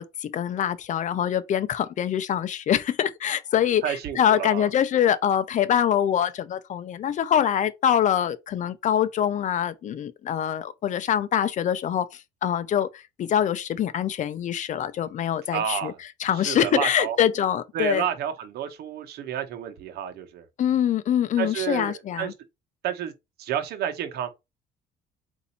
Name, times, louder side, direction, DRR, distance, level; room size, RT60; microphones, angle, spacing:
voice 1, 0.0-15.9 16.2-18.1 20.6-22.3, left 9 dB, 45° left, 0.6 m, -24 dB
voice 2, 3.8-4.7 15.5-16.0 16.3-17.2 17.7-20.4 21.4-22.3 22.8-23.1 23.4-24.3, right 9 dB, 70° right, 0.9 m, -30 dB
4.0 x 2.7 x 4.2 m
cardioid pair, 110°, 17 cm